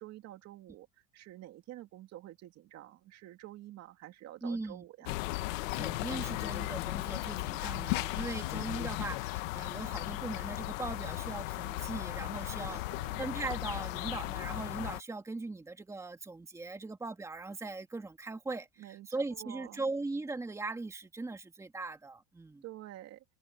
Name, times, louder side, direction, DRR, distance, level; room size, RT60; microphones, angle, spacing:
voice 1, 0.0-5.2 7.6-8.3 12.4-13.2 18.8-19.8 22.6-23.2, right 14 dB, 40° right, 2.3 m, -49 dB
voice 2, 4.4-4.8 5.7-12.8 13.2-22.6, right 3 dB, 10° right, 2.0 m, -39 dB
sound 1, 5.1-15.0, left 20 dB, 85° left, 1.5 m, -36 dB
cardioid pair, 150°, 38 cm